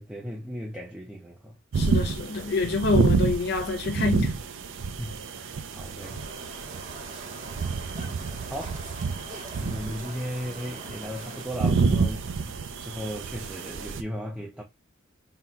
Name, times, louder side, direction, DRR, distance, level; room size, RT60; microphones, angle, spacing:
voice 1, 0.0-1.6 5.0-6.2 8.5-8.9 9.6-14.6, equal, 5° right, 0.5 m, -36 dB
sound 1, 1.7-14.0, right 4 dB, 60° right, 0.5 m, -29 dB
voice 2, 1.8-4.3, left 3 dB, 50° left, 0.6 m, -26 dB
sound 2, 6.0-11.5, right 2 dB, 40° right, 0.9 m, -44 dB
3.9 x 2.2 x 4.2 m
head